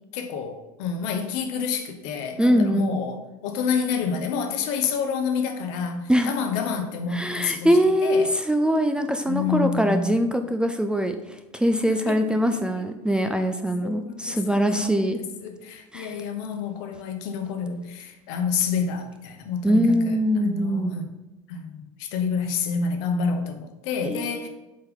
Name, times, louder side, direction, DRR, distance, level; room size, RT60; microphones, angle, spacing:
voice 1, 0.1-7.7 8.0-8.3 9.2-10.1 11.9-12.4 13.8-14.4 14.8-21.1 21.5-24.5, left 6 dB, 60° left, 6 dB, 1.0 m, -28 dB
voice 2, 2.4-3.1 6.1-6.3 7.1-15.2 15.9-16.2 19.6-21.0 24.0-24.5, equal, 5° right, 6 dB, 0.5 m, -23 dB
7.5 x 4.4 x 3.8 m, 1.1 s
figure-of-eight pair, 70°, 17 cm